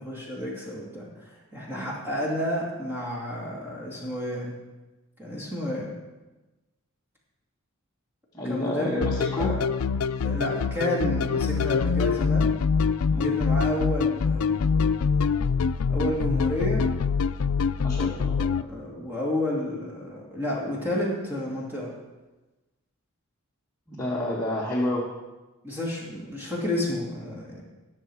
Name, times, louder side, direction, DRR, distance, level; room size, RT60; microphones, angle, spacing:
voice 1, 0.0-4.5 5.2-6.0 8.4-9.1 9.4-9.6 10.2-12.5 13.2-14.8 15.9-16.9 18.1-21.9 25.6-27.6, left 1 dB, 10° right, -4 dB, 2.5 m, -31 dB
voice 2, 8.3-9.5 13.1-13.3 17.8-18.4 23.9-25.1, left 1 dB, 15° left, -5 dB, 1.5 m, -29 dB
sound 1, 9.0-18.6, left 5 dB, 90° left, 0.4 m, -25 dB
19.0 x 6.3 x 4.8 m, 1.1 s
head